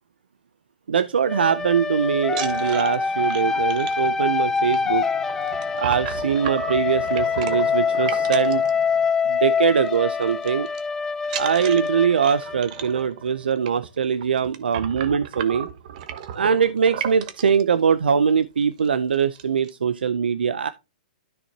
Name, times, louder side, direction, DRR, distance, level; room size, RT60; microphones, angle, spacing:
voice 1, 0.9-5.1 5.8-8.6 9.2-10.7 11.3-15.7 16.3-20.7, right 7 dB, 90° right, 0.5 m, -22 dB
sound 1, 1.2-13.1, left 5 dB, 10° left, 0.4 m, -25 dB
sound 2, 2.2-9.4 9.7-10.0 10.2-10.8 11.2-17.6 18.3-18.4 18.7-18.9 19.1-19.7, right 9 dB, 50° right, 1.1 m, -35 dB
13.0 x 4.4 x 2.8 m
hypercardioid pair, 140°, 5 cm